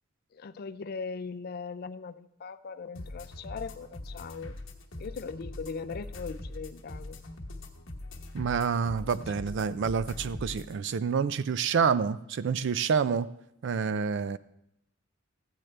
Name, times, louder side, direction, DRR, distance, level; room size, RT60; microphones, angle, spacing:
voice 1, 0.3-4.6 5.0-7.2 9.3-9.4, left 5 dB, 50° left, 11 dB, 0.4 m, -39 dB
sound 1, 2.9-10.7, left 1 dB, 80° left, 1.1 m, -42 dB
voice 2, 8.3-13.3 13.6-14.4, right 6 dB, 65° right, 16 dB, 0.4 m, -28 dB
13.5 x 8.9 x 3.3 m, 0.78 s
head